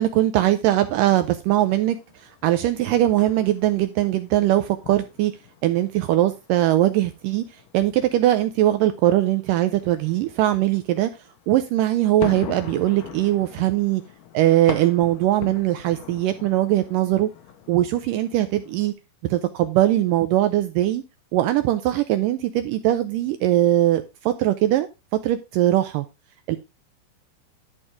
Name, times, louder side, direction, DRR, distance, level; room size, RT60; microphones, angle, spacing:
voice 1, 0.0-5.3 5.6-7.4 7.7-11.1 11.5-14.0 14.3-17.3 17.7-18.9 19.3-21.0 21.3-24.9 25.2-26.1 26.5-26.6, right 14 dB, 80° right, 9 dB, 2.0 m, -21 dB
sound 1, 1.6-18.9, left 10 dB, 70° left, 2.4 m, -42 dB
11.5 x 4.5 x 4.9 m, 0.27 s
omnidirectional pair, 4.4 m